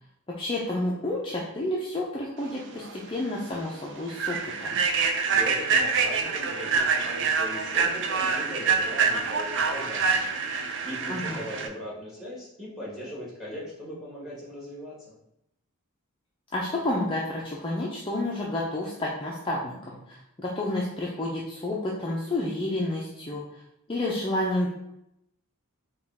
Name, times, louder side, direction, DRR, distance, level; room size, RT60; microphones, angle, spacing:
voice 1, 0.4-4.8 11.1-11.4 16.5-23.4 23.9-24.7, left 1 dB, 25° left, -4 dB, 0.5 m, -30 dB
Human voice / Train, 2.8-3.0 3.4-3.6 4.1-11.7, right 5 dB, 55° right, 0.5 m, -26 dB
voice 2, 5.2-10.6 10.8-15.0, equal, ahead, -6 dB, 1.5 m, -39 dB
4.9 x 2.4 x 3.4 m, 0.81 s
head